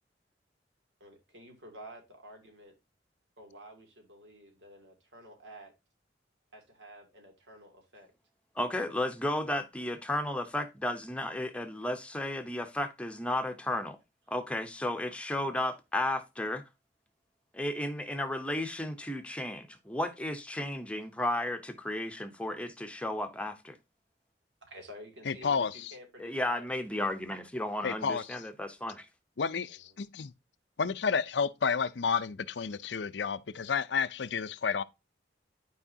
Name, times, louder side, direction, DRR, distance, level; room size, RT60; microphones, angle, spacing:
voice 1, 1.0-2.7 3.4-5.7 6.5-8.1 24.6-26.9 29.4-29.9, right 1 dB, 80° right, 2.7 m, -51 dB
voice 2, 8.6-14.0 14.3-16.6 17.5-23.8 26.2-29.1, left 1 dB, 5° left, 0.8 m, -33 dB
voice 3, 25.3-25.9 27.8-28.2 29.4-30.3 30.8-33.4 33.7-34.8, left 6 dB, 80° left, 0.6 m, -30 dB
11.5 x 4.8 x 2.8 m
head